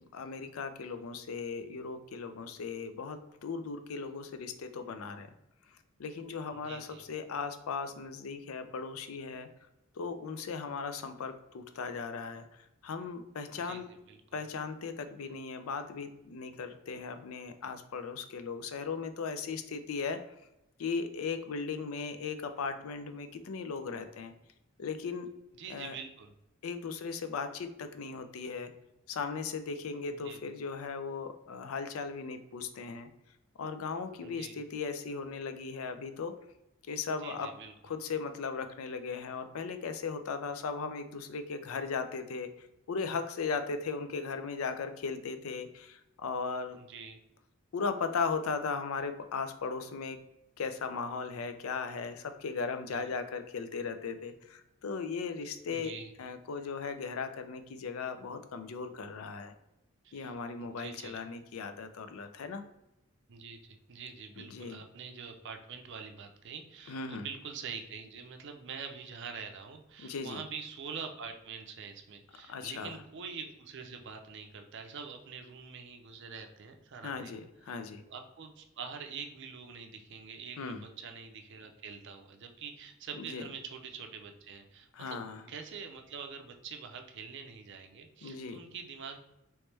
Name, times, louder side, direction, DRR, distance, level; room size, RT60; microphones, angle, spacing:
voice 1, 0.1-5.3 6.0-9.5 10.0-12.5 12.8-13.9 14.3-20.2 20.8-24.3 24.8-25.3 25.7-26.0 26.6-28.7 29.1-33.1 33.6-36.3 36.9-37.5 37.8-46.8 47.7-50.2 50.6-59.5 60.1-62.6 64.4-64.8 66.9-67.3 70.0-70.4 72.5-72.9 77.0-78.0 80.6-80.8 83.2-83.4 84.9-85.4 88.2-88.6, left 5 dB, 90° left, 9 dB, 0.4 m, -37 dB
voice 2, 6.5-7.0 13.5-14.2 25.6-26.3 30.1-30.4 34.2-34.6 37.2-37.7 46.8-47.2 52.8-53.1 55.7-56.1 60.0-61.2 63.3-77.4 77.7-77.8 78.1-89.2, right 6 dB, 60° right, 5 dB, 0.5 m, -45 dB
3.1 x 3.1 x 3.2 m, 0.86 s
head